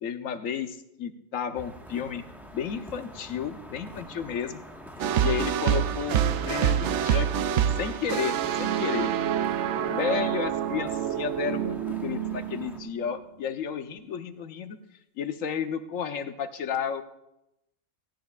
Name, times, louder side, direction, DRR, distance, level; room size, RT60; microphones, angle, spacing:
voice 1, 0.0-2.2 2.5-4.6 5.2-9.2 9.8-14.8 15.2-17.0, left 7 dB, 75° left, 8 dB, 1.2 m, -32 dB
sound 1, 1.5-12.8, equal, ahead, 1.3 m, -45 dB
sound 2, 5.0-13.2, right 9 dB, 65° right, 0.8 m, -27 dB
17.0 x 16.0 x 2.4 m, 0.85 s
omnidirectional pair, 1.4 m